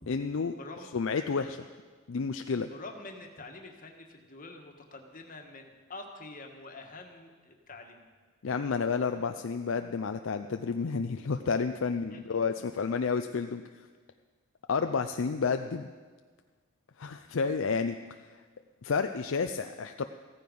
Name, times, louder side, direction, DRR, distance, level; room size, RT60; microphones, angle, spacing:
voice 1, 0.1-0.5 0.9-1.7 2.1-2.7 8.4-13.6 14.7-15.9 17.0-18.0 18.8-20.0, left 5 dB, 65° left, 7 dB, 0.5 m, -30 dB
voice 2, 0.6-0.9 1.3-1.5 2.3-8.1 12.1-12.9, left 2 dB, 40° left, 3 dB, 1.6 m, -47 dB
15.0 x 14.0 x 5.4 m, 1.5 s
head